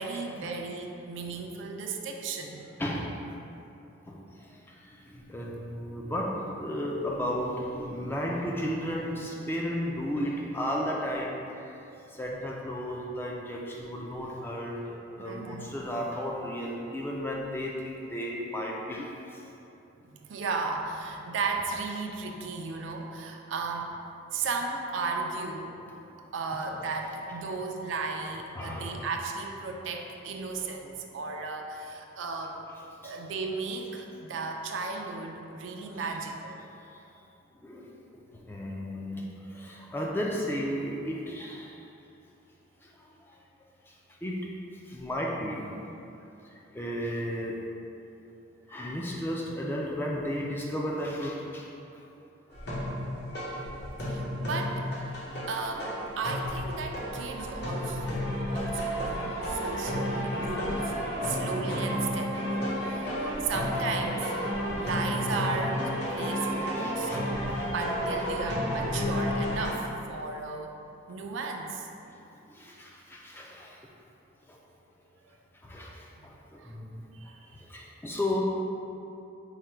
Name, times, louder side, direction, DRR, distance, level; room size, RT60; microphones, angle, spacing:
voice 1, 0.0-2.7 15.2-15.7 20.1-23.9 24.3-25.8 26.3-32.6 33.0-36.6 54.0-54.8 55.5-58.0 58.5-60.9 61.2-64.3 64.8-67.2 67.7-70.7 71.1-71.9 76.2-76.3 76.6-76.8 77.1-77.6, right 4 dB, 75° right, 2 dB, 0.4 m, -35 dB
voice 2, 2.8-3.1 4.1-11.8 12.1-19.4 26.1-26.2 28.5-29.0 33.0-33.1 35.9-36.2 37.6-38.0 38.3-41.8 42.8-43.2 43.9-44.4 44.9-45.8 46.4-47.6 48.7-51.7 55.3-55.4 55.7-55.9 58.3-58.6 59.5-59.6 60.0-60.3 60.7-61.0 62.5-62.7 63.3-63.4 66.6-67.7 72.5-73.8 74.5-74.6 75.6-78.4, equal, 10° left, -2 dB, 0.3 m, -34 dB
sound 1, 52.5-69.7, equal, 55° left, 0.9 m, -31 dB
4.8 x 2.2 x 4.3 m, 2.8 s
head